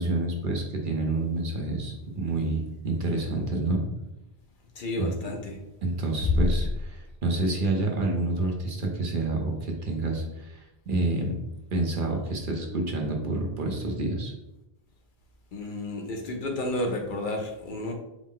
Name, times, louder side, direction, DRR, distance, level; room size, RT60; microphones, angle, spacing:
voice 1, 0.0-3.8 5.0-5.1 5.8-11.3 11.7-14.3, right 2 dB, 60° right, 1 dB, 0.9 m, -28 dB
voice 2, 4.7-5.6 15.5-17.9, left 1 dB, 60° left, 3 dB, 0.7 m, -31 dB
4.9 x 2.1 x 3.7 m, 0.94 s
omnidirectional pair, 1.0 m